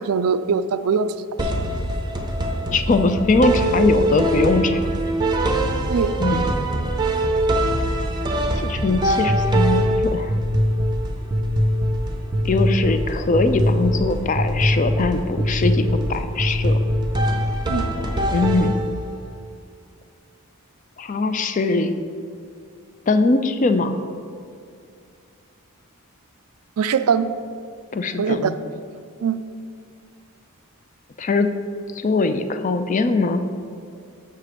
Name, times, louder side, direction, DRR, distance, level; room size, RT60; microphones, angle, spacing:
voice 1, 0.0-1.5 5.9-6.1 17.7-17.9 26.8-27.3 28.2-28.5 29.2-29.4, right 6 dB, 80° right, 12 dB, 0.4 m, -22 dB
sound 1, 1.4-19.2, equal, 20° right, 0.6 m, -22 dB
voice 2, 2.7-4.9 6.2-6.5 8.5-10.3 12.4-16.9 18.3-18.9 21.0-22.0 23.1-24.0 27.9-28.6 31.2-31.5 31.9-33.5, left 3 dB, 35° left, 9 dB, 0.4 m, -21 dB
7.4 x 5.7 x 5.0 m, 2.4 s
head